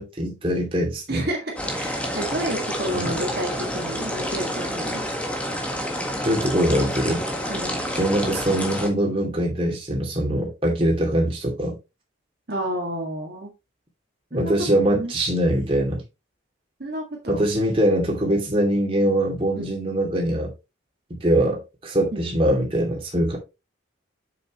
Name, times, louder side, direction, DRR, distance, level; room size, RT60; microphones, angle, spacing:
voice 1, 0.0-1.3 2.9-3.2 6.2-7.2 8.0-11.8 14.3-16.0 17.3-20.5 21.1-23.4, right 1 dB, 25° right, 2.5 m, -22 dB
voice 2, 1.1-5.0 7.5-7.9 12.5-13.5 14.3-14.5 14.9-15.1 16.8-17.4 19.6-19.7 22.1-22.4, right 1 dB, 50° right, 1.9 m, -31 dB
sound 1, 1.6-8.9, equal, 5° left, 1.5 m, -28 dB
7.6 x 6.8 x 3.0 m
head